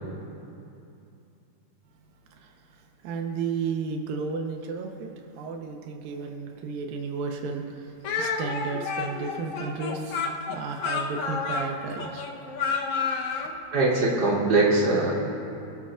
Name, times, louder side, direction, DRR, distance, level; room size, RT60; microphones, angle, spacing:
voice 1, 3.0-12.2, right 5 dB, 85° right, 2 dB, 2.8 m, -33 dB
Speech, 8.0-13.5, left 5 dB, 65° left, 2.1 m, -30 dB
voice 2, 13.7-15.1, right 2 dB, 35° right, -8 dB, 3.7 m, -21 dB
29.5 x 13.0 x 2.5 m, 2.7 s
omnidirectional pair, 4.0 m